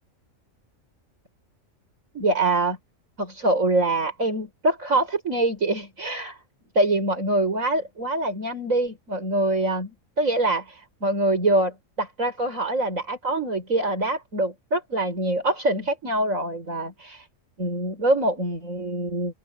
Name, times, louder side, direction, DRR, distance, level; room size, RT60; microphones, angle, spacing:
voice 1, 2.1-2.8 3.2-6.4 6.7-9.9 10.2-17.2 17.6-19.3, right 2 dB, 85° right, 6.5 m, -24 dB
open air
omnidirectional pair, 1.4 m